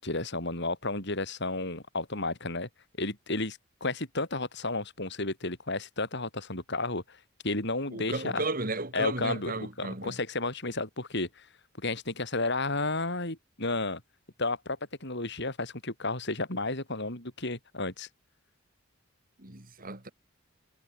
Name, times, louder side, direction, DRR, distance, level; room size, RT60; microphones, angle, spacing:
voice 1, 0.0-2.7 3.0-7.2 7.4-8.4 8.9-9.5 9.8-11.5 11.8-14.0 14.4-18.1, left 2 dB, 60° left, 7.9 m, -32 dB
voice 2, 7.9-10.2 19.4-20.1, right 2 dB, 45° right, 3.3 m, -34 dB
head